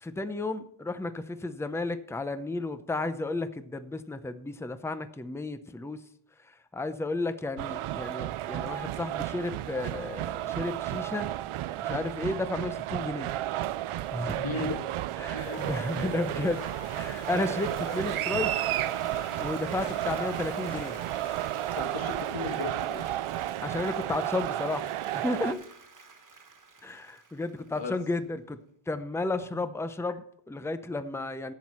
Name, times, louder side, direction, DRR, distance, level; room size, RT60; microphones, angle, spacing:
voice 1, 0.0-6.0 6.7-11.3 11.8-13.3 14.1-14.8 15.2-16.6 16.9-18.5 19.4-21.0 23.6-25.6 26.8-28.6 28.9-31.5, left 2 dB, 5° left, 11 dB, 0.6 m, -33 dB
sound 1, 7.6-25.5, right 14 dB, 80° right, 0.5 m, -32 dB
voice 2, 14.4-14.8 15.3-15.7 21.8-23.2 27.8-28.0 29.5-29.6, left 2 dB, 65° left, 4 dB, 1.9 m, -36 dB
sound 2, 15.4-21.8, left 10 dB, 80° left, 0.7 m, -47 dB
Applause, 16.8-28.1, right 4 dB, 40° right, 1.6 m, -50 dB
11.5 x 7.9 x 4.3 m, 0.67 s
wide cardioid pair, 130°, 50 cm